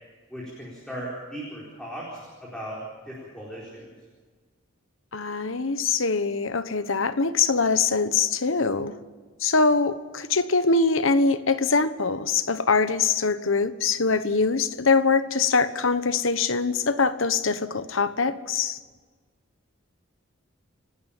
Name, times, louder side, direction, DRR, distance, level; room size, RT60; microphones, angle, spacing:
voice 1, 0.3-2.8 3.1-3.9, equal, 5° left, -5 dB, 4.5 m, -37 dB
voice 2, 5.1-8.9 9.4-18.8, left 4 dB, 70° left, 12 dB, 1.1 m, -23 dB
29.5 x 12.5 x 7.3 m, 1.4 s
head